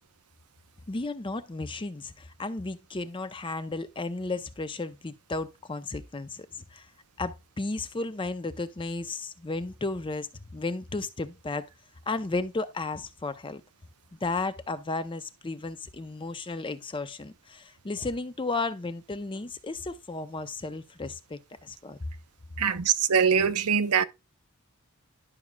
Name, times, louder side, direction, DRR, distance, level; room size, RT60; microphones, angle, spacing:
voice 1, 0.9-6.9 7.2-11.7 12.1-13.6 14.1-22.0, left 3 dB, 20° left, 0.6 m, -34 dB
voice 2, 22.6-24.0, right 7 dB, 80° right, 0.6 m, -23 dB
11.0 x 6.1 x 2.2 m
head